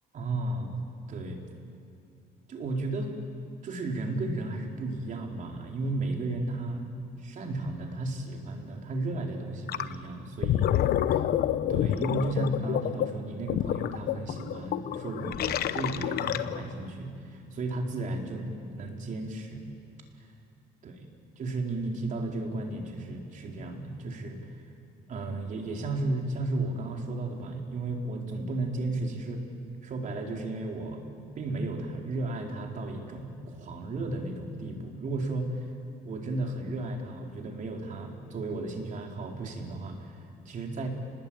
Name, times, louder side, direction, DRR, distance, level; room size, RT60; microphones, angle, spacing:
voice 1, 0.1-0.8 1.1-1.4 2.5-3.1 3.6-6.9 7.2-10.7 11.1-11.2 11.7-19.6 20.2-20.3 20.8-21.1 21.4-24.5 25.1-29.4 29.8-35.7 36.0-40.9, right 2 dB, 50° right, 1 dB, 4.2 m, -34 dB
Gurgling, 9.7-9.9 10.3-16.8, left 11 dB, 65° left, 1.0 m, -28 dB
28.5 x 20.5 x 8.8 m, 2.4 s
cardioid pair, 110°, 17 cm